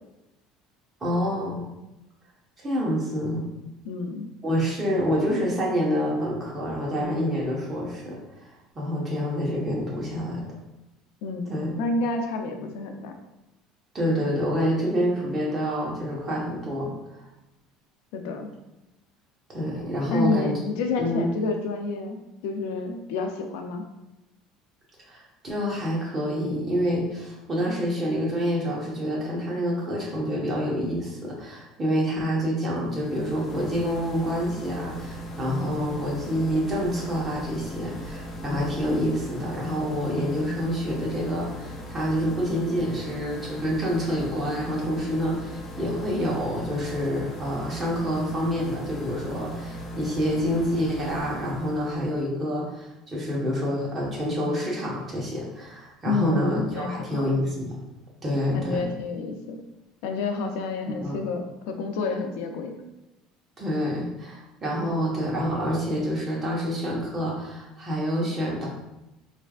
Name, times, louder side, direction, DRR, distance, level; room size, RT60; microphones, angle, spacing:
voice 1, 1.0-1.7 2.6-3.5 4.4-8.2 8.7-10.4 11.5-11.7 13.9-16.9 19.5-20.5 21.0-21.3 25.0-57.8 58.2-58.9 60.9-61.2 63.6-68.7, equal, 20° right, -4 dB, 1.2 m, -27 dB
voice 2, 3.8-4.3 11.2-13.1 18.1-18.5 20.1-22.2 22.4-23.8 56.1-57.3 58.5-59.6 60.0-62.8, left 3 dB, 85° left, 4 dB, 0.6 m, -29 dB
sound 1, 32.8-52.2, equal, 35° left, 0.6 m, -38 dB
4.3 x 3.3 x 2.4 m, 0.96 s
cardioid pair, 145°, 0 cm